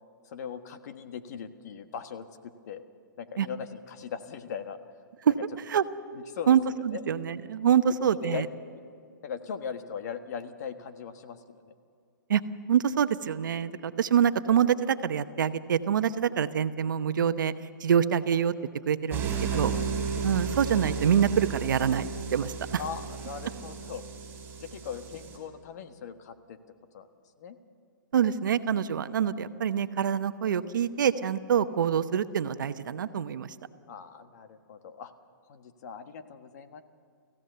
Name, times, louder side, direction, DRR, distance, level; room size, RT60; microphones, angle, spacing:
voice 1, 0.2-2.8 3.2-4.8 6.1-6.6 6.9-7.1 8.0-8.5 9.2-11.7 19.1-19.2 19.5-19.9 22.8-24.0 24.6-26.6 26.9-27.1 27.4-27.6 33.9-35.1 35.5-36.8, left 7 dB, 55° left, 9 dB, 1.5 m, -39 dB
voice 2, 6.5-8.5 12.3-12.4 12.7-17.5 17.8-18.5 18.9-19.3 19.5-19.7 20.2-22.8 28.1-33.5, right 8 dB, 70° right, 11 dB, 1.0 m, -25 dB
sound 1, 19.1-25.4, right 6 dB, 15° right, 4.6 m, -34 dB
24.5 x 15.5 x 6.8 m, 2.4 s
hypercardioid pair, 140°, 11 cm